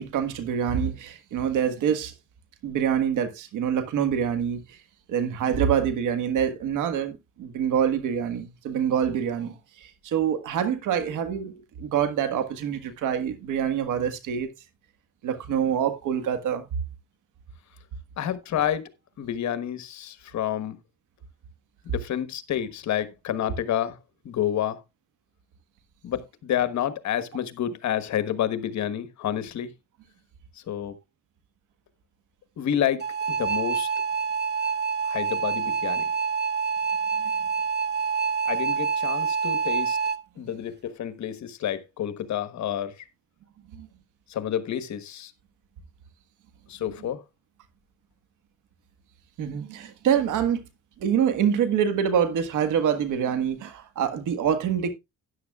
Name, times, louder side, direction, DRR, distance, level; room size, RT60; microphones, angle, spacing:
voice 1, 0.0-2.1 2.6-4.8 5.1-14.5 15.2-16.7 37.2-37.3 40.4-40.5 43.7-43.9 49.4-50.6 51.0-54.9, right 8 dB, 85° right, 1.6 m, -26 dB
voice 2, 18.2-18.9 19.2-20.8 21.8-24.0 24.2-24.8 26.0-29.7 30.7-30.9 32.6-33.9 35.1-36.1 38.5-40.0 40.4-43.0 44.3-45.3 46.7-47.2, left 10 dB, 65° left, 1.3 m, -29 dB
sound 1, 33.0-40.2, right 6 dB, 35° right, 0.9 m, -26 dB
13.0 x 10.0 x 2.3 m
cardioid pair, 90°, 30 cm